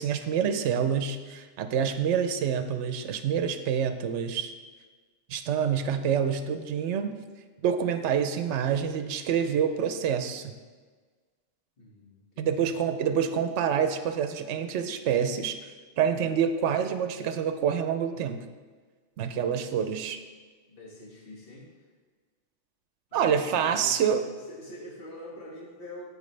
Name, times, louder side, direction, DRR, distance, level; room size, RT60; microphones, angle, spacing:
voice 1, 0.0-4.5 5.3-7.1 7.6-10.5 12.4-15.6 16.0-18.4 19.2-20.2 23.1-24.2, right 7 dB, 75° right, 9 dB, 0.9 m, -27 dB
voice 2, 11.8-12.8 19.5-20.0 20.7-21.9 23.1-24.2 24.4-26.1, left 1 dB, 50° left, -4 dB, 2.0 m, -46 dB
13.5 x 4.9 x 3.3 m, 1.5 s
omnidirectional pair, 1.2 m